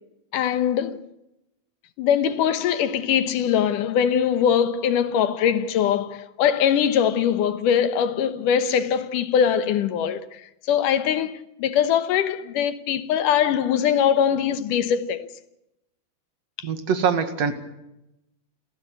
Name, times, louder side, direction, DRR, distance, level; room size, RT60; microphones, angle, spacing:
voice 1, 0.3-1.0 2.0-15.3 16.6-16.7, left 8 dB, 75° left, 2.7 m, -22 dB
voice 2, 16.6-17.5, right 6 dB, 55° right, 2.8 m, -23 dB
28.5 x 15.0 x 8.2 m
omnidirectional pair, 3.9 m